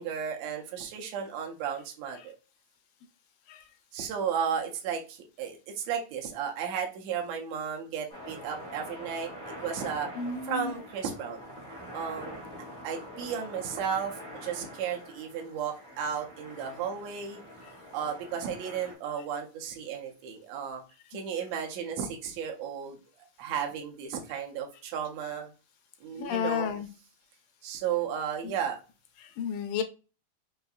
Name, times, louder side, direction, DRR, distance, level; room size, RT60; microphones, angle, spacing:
voice 1, 0.0-2.4 3.9-9.3 9.6-10.1 10.4-11.4 11.9-12.4 12.8-17.4 17.9-20.8 21.1-23.0 23.4-25.5 26.0-26.7 27.6-28.8, right 7 dB, 75° right, 1 dB, 1.7 m, -34 dB
sound 1, 8.1-18.9, equal, 10° left, 0.3 m, -45 dB
voice 2, 10.2-10.7 17.6-17.7 26.2-26.9 28.4-28.5 29.2-29.8, left 6 dB, 85° left, 8 dB, 2.1 m, -32 dB
5.5 x 2.6 x 2.3 m, 0.32 s
omnidirectional pair, 3.8 m